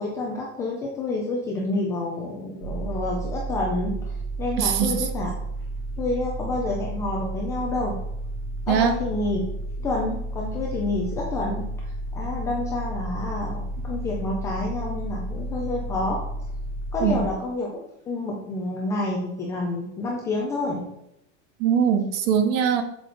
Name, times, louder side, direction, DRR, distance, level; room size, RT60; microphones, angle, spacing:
voice 1, 0.0-5.3 6.0-8.0 8.7-9.4 9.8-16.2 16.9-17.7 18.1-20.9, left 2 dB, 10° left, -2 dB, 0.3 m, -28 dB
sound 1, 2.6-17.3, right 2 dB, 50° right, 1.1 m, -32 dB
voice 2, 4.6-5.0 8.7-8.9 17.0-17.2 21.6-22.8, right 8 dB, 30° right, 9 dB, 0.7 m, -21 dB
7.7 x 6.7 x 3.8 m, 0.81 s
supercardioid pair, 180°, 35 cm